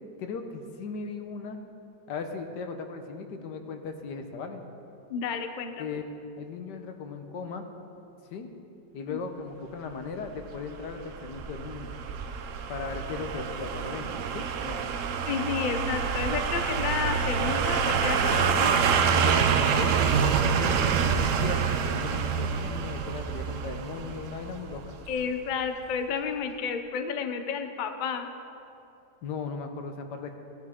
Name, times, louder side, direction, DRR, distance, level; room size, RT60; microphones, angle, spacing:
voice 1, 0.2-1.6 2.1-4.6 5.8-6.0 6.4-7.6 8.3-8.5 8.9-12.0 12.7-14.8 18.5-18.7 19.1-25.0 29.2-30.3, left 5 dB, 85° left, 6 dB, 1.6 m, -37 dB
voice 2, 5.1-5.9 9.1-9.2 15.3-18.6 25.1-28.3, left 6 dB, 55° left, 7 dB, 0.5 m, -31 dB
sound 1, 10.3-25.2 25.5-25.6, right 6 dB, 60° right, 0.9 m, -27 dB
17.0 x 11.0 x 3.7 m, 2.7 s
omnidirectional pair, 1.8 m